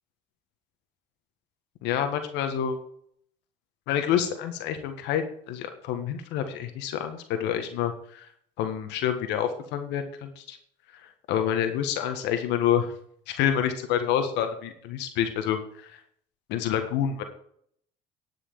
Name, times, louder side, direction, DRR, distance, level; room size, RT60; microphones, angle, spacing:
voice 1, 1.8-2.8 3.9-8.3 8.6-10.6 10.9-11.0 11.3-12.9 13.3-16.0 16.5-17.2, left 9 dB, 75° left, 7 dB, 1.6 m, -28 dB
10.5 x 6.3 x 7.4 m, 0.63 s
supercardioid pair, 65°, 18 cm